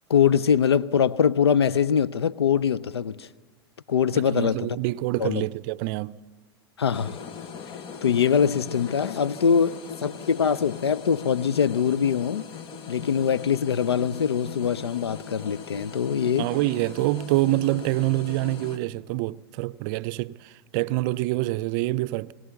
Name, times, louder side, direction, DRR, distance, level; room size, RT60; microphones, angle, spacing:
voice 1, 0.1-3.3 3.9-4.7 5.2-5.4 6.8-7.2 8.0-9.8 10.0-12.4 12.9-16.5, left 7 dB, 90° left, 0.6 m, -23 dB
voice 2, 4.1-6.2 16.4-22.3, right 17 dB, 55° right, 0.5 m, -26 dB
sound 1, 6.9-18.8, left 6 dB, 40° left, 1.3 m, -40 dB
22.0 x 18.0 x 7.0 m
hypercardioid pair, 100°, 13 cm